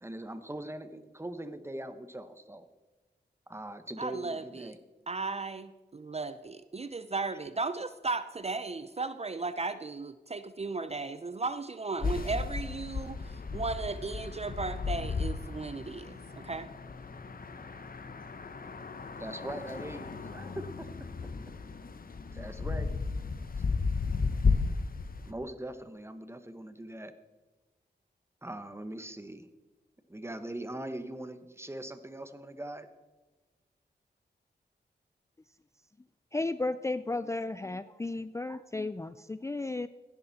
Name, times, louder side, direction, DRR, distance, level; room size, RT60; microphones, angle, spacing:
voice 1, 0.0-2.7 3.5-4.8 19.2-21.1 22.3-23.0 25.2-27.1 28.4-29.5 30.1-32.9, right 1 dB, 15° right, 10 dB, 1.1 m, -41 dB
voice 2, 4.0-4.7 5.1-16.7, right 3 dB, 35° right, 12 dB, 0.5 m, -36 dB
sound 1, 12.0-25.3, left 4 dB, 50° left, 1.0 m, -34 dB
voice 3, 36.3-39.9, left 2 dB, 15° left, 13 dB, 0.4 m, -34 dB
16.0 x 11.0 x 4.1 m, 1.2 s
wide cardioid pair, 80°, 18 cm